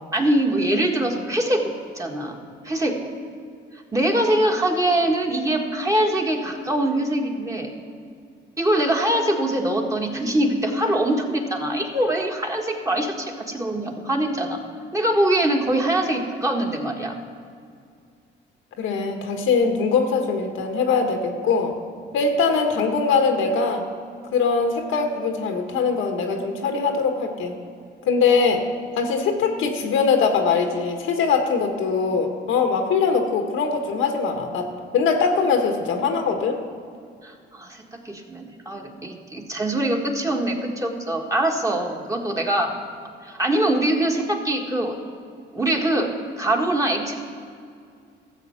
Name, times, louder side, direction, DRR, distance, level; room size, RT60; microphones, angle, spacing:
voice 1, 0.1-2.4 2.6-3.1 3.9-7.7 8.6-14.6 14.9-17.1 37.2-42.7 43.0-45.0 45.5-46.1 46.4-47.1, right 1 dB, 15° right, 1 dB, 1.6 m, -23 dB
voice 2, 18.8-21.7 22.1-23.8 24.3-27.6 28.0-28.6 29.0-36.6, left 5 dB, 90° left, 4 dB, 1.4 m, -22 dB
13.5 x 7.7 x 5.8 m, 2.3 s
cardioid pair, 90°, 20 cm